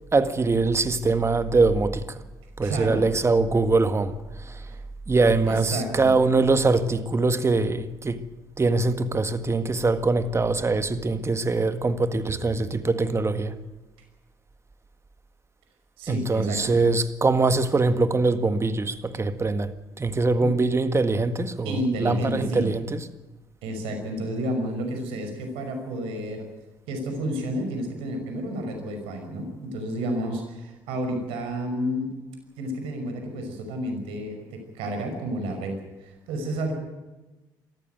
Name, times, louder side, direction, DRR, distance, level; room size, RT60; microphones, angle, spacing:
voice 1, 0.1-2.2 2.6-4.7 5.1-8.2 8.6-13.6 16.1-23.1, right 3 dB, 30° right, 1.8 m, -23 dB
voice 2, 2.6-3.0 4.6-4.8 5.4-6.1 16.0-16.8 20.4-20.5 21.6-22.7 23.6-26.5 26.9-32.1 32.6-36.7, right 1 dB, 80° right, 5.7 m, -31 dB
22.5 x 14.5 x 9.3 m
supercardioid pair, 60°, 9 cm